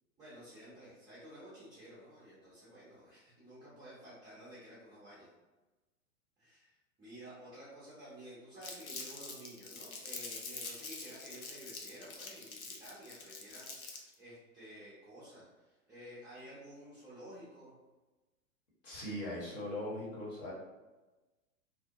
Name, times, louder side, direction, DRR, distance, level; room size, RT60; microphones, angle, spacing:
voice 1, 0.2-5.3 6.4-17.7, equal, 10° right, -11 dB, 0.5 m, -52 dB
Crumpling crinkling, 8.6-14.1, left 3 dB, 80° left, 0.6 m, -45 dB
voice 2, 18.8-20.5, left 1 dB, 40° left, -5 dB, 1.0 m, -40 dB
2.6 x 2.0 x 2.6 m, 1.2 s
figure-of-eight pair, 100°, 42 cm